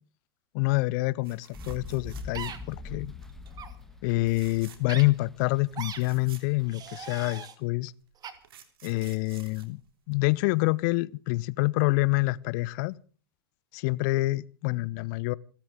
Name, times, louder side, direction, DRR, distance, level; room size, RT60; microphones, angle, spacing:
voice 1, 0.5-3.1 4.0-7.9 8.8-9.8 10.1-13.0 13.7-15.3, left 23 dB, 50° left, 0.7 m, -27 dB
sound 1, 1.2-2.9 3.2-3.5 4.2-5.0 5.4-5.5 5.7-7.2 8.0-10.5 12.4-12.6 12.9-13.0, right 9 dB, 70° right, 3.2 m, -52 dB
sound 2, 1.5-7.1, left 3 dB, 5° left, 2.4 m, -43 dB
sound 3, 2.3-2.6 3.5-3.7 4.9-5.0 5.7-6.0 6.7-7.5 8.2-8.3, right 8 dB, 30° right, 2.5 m, -39 dB
28.5 x 13.0 x 3.7 m
figure-of-eight pair, 90°, 13 cm